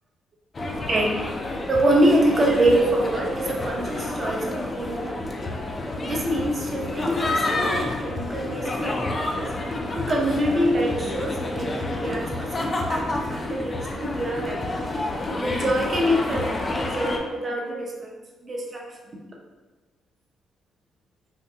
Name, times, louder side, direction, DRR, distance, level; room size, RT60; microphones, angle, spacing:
sound 1, 0.5-17.2, left 2 dB, 35° left, 0.4 m, -29 dB
voice 1, 0.9-1.3 1.7-5.5 6.0-9.6 9.9-14.8 15.4-18.1 18.4-19.0, right 1 dB, 35° right, -1 dB, 0.6 m, -25 dB
3.5 x 2.5 x 2.7 m, 1.3 s
cardioid pair, 90°, 0 cm